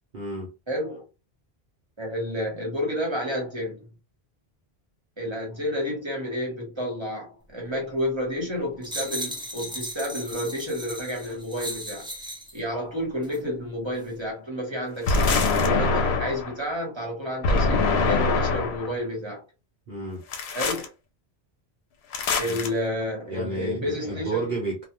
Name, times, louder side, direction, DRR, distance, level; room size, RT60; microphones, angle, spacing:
voice 1, 0.1-0.5 19.9-20.2 22.4-22.7 23.2-24.8, right 2 dB, 55° right, 0.9 m, -32 dB
voice 2, 0.7-1.0 2.0-3.9 5.2-12.1 12.5-19.4 20.5-20.9 22.4-24.5, equal, 30° right, 1.1 m, -30 dB
sound 1, 8.8-12.6 13.2-13.4, right 1 dB, 5° right, 0.4 m, -36 dB
sound 2, 15.1-16.5 17.4-18.9 20.3-20.9 22.1-22.7, left 3 dB, 85° left, 0.9 m, -23 dB
2.3 x 2.3 x 2.9 m
omnidirectional pair, 1.0 m